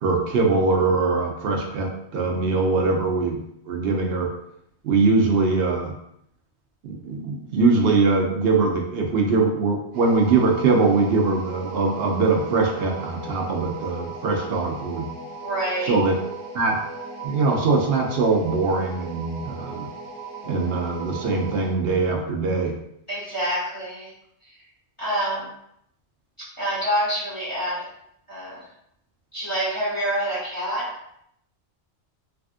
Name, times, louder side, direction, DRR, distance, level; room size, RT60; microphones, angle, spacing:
voice 1, 0.0-3.4 3.7-4.3 4.8-5.9 6.8-15.1 15.8-16.1 16.5-16.8 17.2-19.9 20.4-22.7, right 3 dB, 65° right, 1 dB, 0.8 m, -22 dB
sound 1, 9.9-21.8, right 3 dB, 85° right, 1.0 m, -37 dB
voice 2, 15.4-16.0 23.1-24.1 25.0-25.5 26.6-27.9 28.3-28.7 29.3-31.0, right 1 dB, 25° left, -8 dB, 1.4 m, -27 dB
3.5 x 2.4 x 2.4 m, 0.73 s
omnidirectional pair, 1.2 m